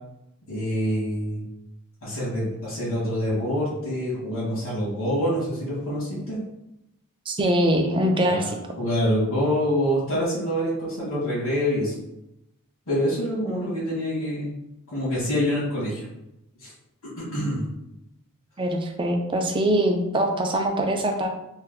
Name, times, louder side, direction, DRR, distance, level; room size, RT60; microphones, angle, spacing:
voice 1, 0.5-1.4 2.0-6.4 8.3-8.4 8.8-12.0 12.9-14.6 14.9-16.0 16.6-16.7 17.2-17.7, equal, 85° left, -7 dB, 1.5 m, -26 dB
voice 2, 7.3-8.6 18.6-21.3, right 1 dB, 25° right, 3 dB, 0.4 m, -23 dB
3.3 x 2.2 x 3.5 m, 0.86 s
head